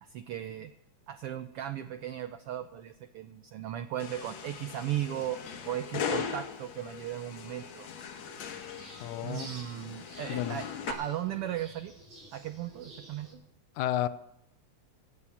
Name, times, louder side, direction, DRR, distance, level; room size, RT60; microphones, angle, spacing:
voice 1, 0.0-0.7 1.1-7.9 9.2-11.9 12.3-13.4, right 11 dB, 90° right, 10 dB, 1.3 m, -37 dB
sound 1, 4.0-10.9, left 7 dB, 65° left, 2.4 m, -39 dB
sound 2, 8.2-13.3, right 1 dB, 75° right, 8.3 m, -51 dB
voice 2, 9.0-9.5 10.3-10.6 13.8-14.1, left 12 dB, 85° left, 14 dB, 2.2 m, -31 dB
17.0 x 8.7 x 7.1 m, 0.84 s
omnidirectional pair, 3.4 m